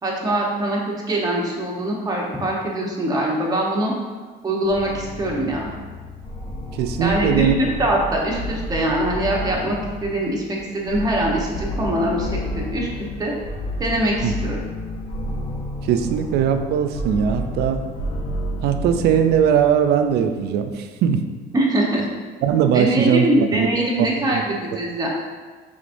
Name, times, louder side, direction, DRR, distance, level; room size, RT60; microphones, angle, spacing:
voice 1, 0.0-3.9 4.4-5.7 7.0-12.9 13.2-13.3 13.8-14.6 21.5-22.1 22.7-25.1, right 1 dB, 20° right, -2 dB, 1.0 m, -23 dB
sound 1, 4.6-20.3, left 1 dB, 35° left, 0.5 m, -31 dB
voice 2, 6.8-7.5 14.2-14.3 15.8-17.8 18.6-21.2 22.4-23.7 24.0-24.1 24.3-24.4, right 8 dB, 75° right, 8 dB, 0.4 m, -19 dB
5.0 x 3.5 x 2.6 m, 1.4 s
cardioid pair, 110°, 17 cm